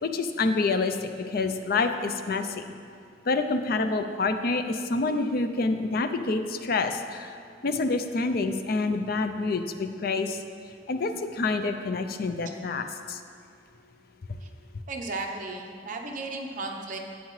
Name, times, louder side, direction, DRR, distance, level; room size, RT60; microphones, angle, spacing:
voice 1, 0.0-2.6 3.3-7.4 7.6-10.4 10.9-13.2, left 3 dB, 55° left, 8 dB, 0.5 m, -27 dB
voice 2, 14.9-17.0, right 3 dB, 50° right, 2 dB, 0.9 m, -35 dB
11.5 x 8.3 x 3.2 m, 2.4 s
head